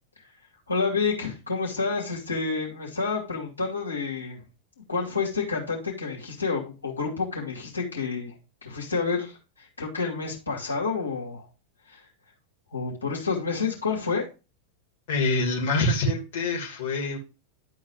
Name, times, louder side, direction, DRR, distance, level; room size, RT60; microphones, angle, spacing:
voice 1, 0.7-4.4 4.9-8.3 8.6-11.5 11.9-12.0 12.7-14.3, left 4 dB, 80° left, -2 dB, 2.5 m, -29 dB
voice 2, 15.1-17.2, left 2 dB, 50° left, -1 dB, 2.5 m, -25 dB
11.0 x 4.0 x 4.8 m, 0.29 s
figure-of-eight pair, 90°, 0 cm